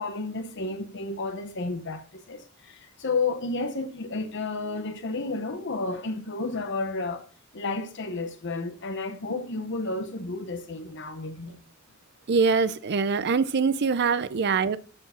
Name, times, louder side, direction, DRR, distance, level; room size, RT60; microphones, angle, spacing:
voice 1, 0.0-7.2 7.5-11.6 14.0-14.1, left 3 dB, 60° left, 1.0 m, -32 dB
voice 2, 12.3-14.8, right 5 dB, 55° right, 0.5 m, -23 dB
13.0 x 4.6 x 5.7 m
head